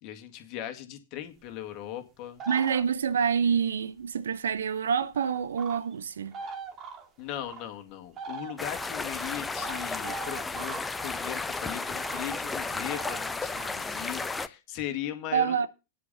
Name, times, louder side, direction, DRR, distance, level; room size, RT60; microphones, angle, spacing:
voice 1, 0.0-2.4 7.2-15.7, left 12 dB, 40° left, 2.1 m, -38 dB
sound 1, 2.4-3.3 4.6-4.7 5.2-5.9 6.3-7.6 8.2-11.4 11.8-14.1, right 5 dB, 30° right, 2.2 m, -41 dB
voice 2, 2.5-6.3 15.3-15.7, right 7 dB, 65° right, 0.8 m, -27 dB
sound 2, 8.6-14.5, left 3 dB, 10° left, 0.8 m, -33 dB
10.0 x 8.6 x 5.6 m
figure-of-eight pair, 90°, 0 cm